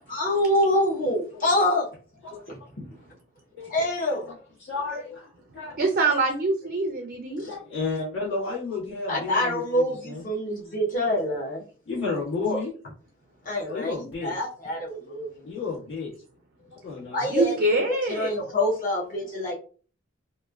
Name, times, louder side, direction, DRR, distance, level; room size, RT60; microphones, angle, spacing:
voice 1, 0.1-1.9 2.8-2.9 3.7-4.2 9.1-11.6 12.4-12.6 13.4-15.3 17.1-19.5, left 1 dB, 40° left, 0.7 m, -26 dB
voice 2, 4.6-5.8 7.4-10.2 11.9-12.7 13.7-14.3 15.4-16.1 16.7-17.3 18.4-18.5, left 4 dB, 65° left, 1.4 m, -32 dB
voice 3, 5.8-7.4 17.3-18.3, right 2 dB, 45° right, 0.4 m, -24 dB
3.0 x 2.2 x 2.3 m
head